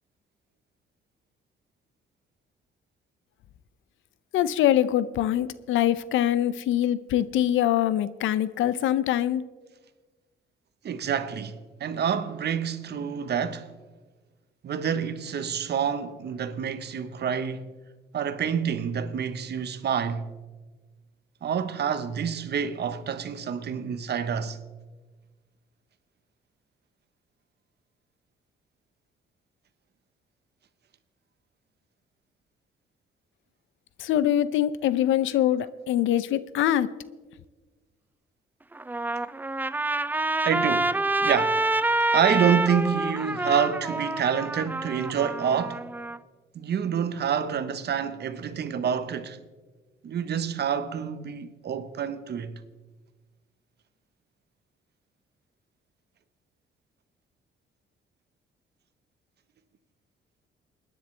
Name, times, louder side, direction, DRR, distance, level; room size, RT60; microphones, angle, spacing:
voice 1, 4.3-9.4 34.0-36.9, left 11 dB, 80° left, 0.6 m, -24 dB
voice 2, 10.8-13.7 14.6-17.7 18.1-20.3 21.4-24.6 40.4-41.7 42.1-45.8 46.5-49.4 50.0-52.6, right 7 dB, 55° right, 1.0 m, -27 dB
Trumpet, 38.7-46.2, right 2 dB, 10° right, 0.4 m, -27 dB
29.0 x 10.0 x 3.3 m
cardioid pair, 90°, 20 cm